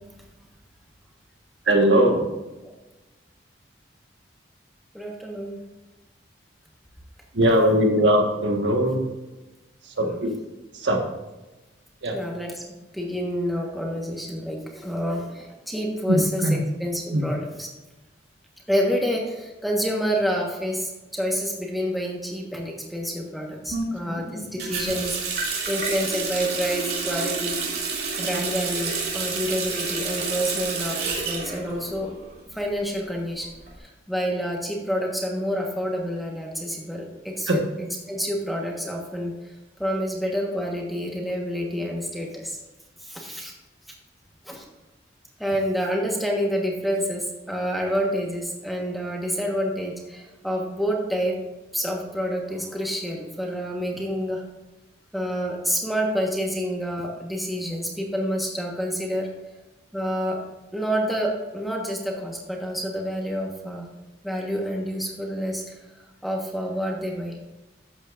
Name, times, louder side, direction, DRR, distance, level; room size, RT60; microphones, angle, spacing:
voice 1, 1.6-2.3 7.3-9.0 9.8-10.3 10.7-11.1 12.0-12.2 16.1-16.6 17.1-17.3 23.7-24.5 24.8-25.0 28.3-28.4 37.5-37.6, right 1 dB, 80° right, 2 dB, 1.5 m, -21 dB
voice 2, 4.9-5.6 12.1-12.5 12.9-16.4 16.8-17.7 18.7-25.3 25.7-27.6 28.2-32.1 32.5-33.5 33.8-37.6 38.1-39.3 39.8-42.6 43.0-43.5 44.4-44.6 45.4-51.4 51.7-54.4 55.1-59.3 59.9-60.4 60.7-63.9 64.2-65.6 66.2-67.4, equal, ahead, -1 dB, 1.3 m, -28 dB
Water tap faucet, 24.6-32.3 32.6-33.7, right 4 dB, 55° right, 2.7 m, -29 dB
12.0 x 8.3 x 2.6 m, 1.1 s
head